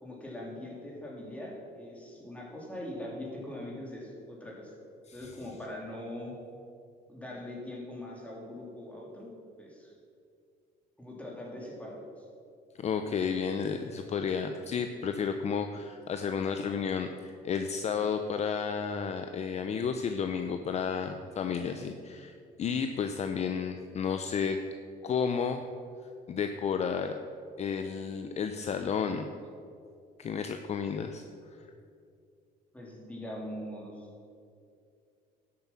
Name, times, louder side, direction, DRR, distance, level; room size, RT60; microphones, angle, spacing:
voice 1, 0.0-4.7 5.1-6.3 7.1-9.3 9.6-9.9 11.0-12.2 32.7-34.1, left 1 dB, 10° left, -3 dB, 3.1 m, -42 dB
voice 2, 12.8-24.6 25.0-25.6 26.3-27.2 27.6-29.3 30.2-31.2, left 6 dB, 40° left, 7 dB, 0.6 m, -32 dB
11.5 x 7.6 x 5.9 m, 2.4 s
cardioid pair, 110°, 17 cm